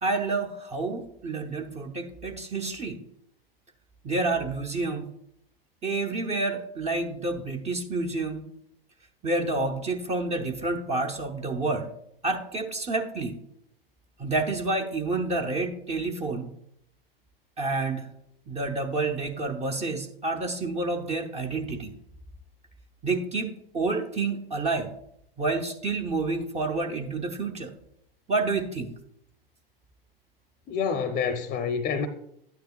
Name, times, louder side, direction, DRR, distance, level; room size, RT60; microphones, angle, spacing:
voice 1, 0.0-3.0 4.0-5.1 5.8-8.4 9.2-11.9 12.2-13.4 14.2-16.5 17.6-18.1 18.5-21.9 23.0-24.9 25.4-27.7 28.3-28.9, right 3 dB, 20° right, 0.8 m, -29 dB
voice 2, 30.7-32.1, left 6 dB, 25° left, 0.7 m, -27 dB
12.0 x 9.3 x 2.3 m
figure-of-eight pair, 90°, 30 cm